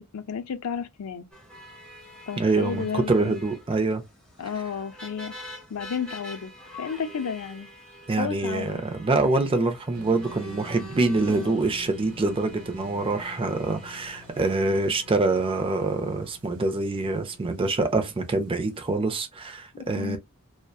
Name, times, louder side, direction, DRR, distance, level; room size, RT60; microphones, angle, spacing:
voice 1, 0.1-1.3 2.3-3.4 4.4-5.3 5.7-6.5 6.8-7.7 8.2-8.8 11.3-11.6 19.7-20.2, left 6 dB, 75° left, 0.5 m, -32 dB
sound 1, 1.3-19.1, equal, 5° left, 0.8 m, -46 dB
voice 2, 2.4-4.0 8.1-20.2, right 3 dB, 25° right, 0.4 m, -25 dB
sound 2, 9.9-19.0, left 1 dB, 70° right, 0.8 m, -47 dB
2.6 x 2.1 x 2.2 m
head